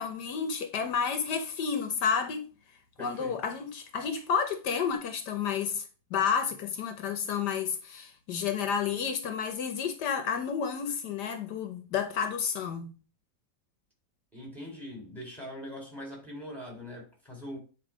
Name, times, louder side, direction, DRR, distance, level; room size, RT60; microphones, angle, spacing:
voice 1, 0.0-2.4 3.0-5.8 6.1-12.9, left 6 dB, 80° left, 1.5 m, -31 dB
voice 2, 3.0-3.4 14.3-17.6, equal, ahead, 3.3 m, -42 dB
9.2 x 3.3 x 4.9 m
omnidirectional pair, 1.8 m